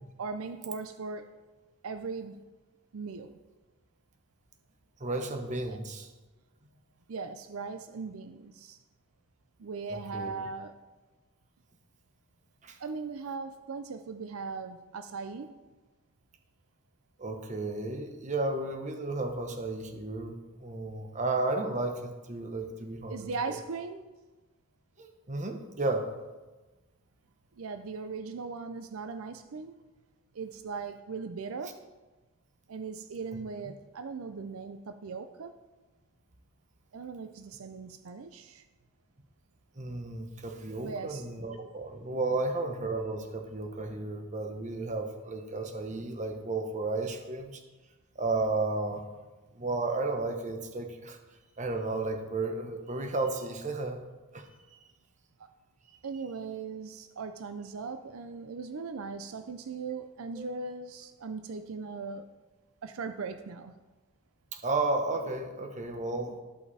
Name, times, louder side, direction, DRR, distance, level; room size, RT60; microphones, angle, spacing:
voice 1, 0.2-1.3 1.8-2.5 2.9-3.4 5.7-5.8 7.1-8.8 9.6-10.8 12.8-15.6 23.1-24.1 27.6-29.7 30.3-31.8 32.7-35.5 36.9-38.6 40.8-41.3 55.4-55.5 56.0-62.3 62.8-63.7, right 4 dB, 75° right, 9 dB, 0.5 m, -39 dB
voice 2, 5.0-6.1 9.9-10.4 12.6-12.8 17.2-23.6 25.0-26.1 39.8-47.6 48.1-49.0 49.5-51.2 51.6-54.0 54.3-54.5 60.4-60.5 64.5-66.4, right 2 dB, 35° right, 5 dB, 1.0 m, -33 dB
13.5 x 5.8 x 4.1 m, 1.2 s
head